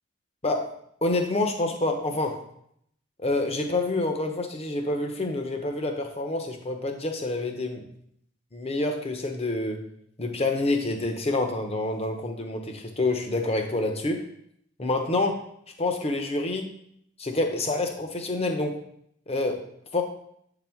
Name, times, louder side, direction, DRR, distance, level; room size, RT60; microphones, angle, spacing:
voice 1, 0.4-0.7 1.0-2.4 3.2-7.9 8.5-9.8 10.2-14.2 14.8-15.4 15.8-16.7 17.2-18.8 19.3-19.6 19.9-20.0, left 2 dB, 30° left, 4 dB, 0.9 m, -27 dB
7.7 x 4.0 x 4.5 m, 0.70 s
head